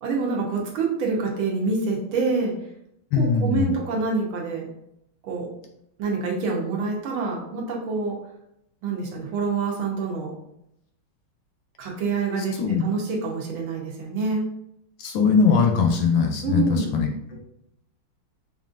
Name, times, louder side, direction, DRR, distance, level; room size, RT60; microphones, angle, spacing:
voice 1, 0.0-2.5 3.1-4.7 5.2-5.5 6.0-8.2 8.8-10.3 11.8-14.4 16.4-16.9, right 4 dB, 75° right, -1 dB, 1.6 m, -26 dB
voice 2, 3.1-3.7 12.6-12.8 15.0-17.4, left 5 dB, 75° left, 3 dB, 1.3 m, -21 dB
5.2 x 2.5 x 2.5 m, 0.77 s
omnidirectional pair, 2.3 m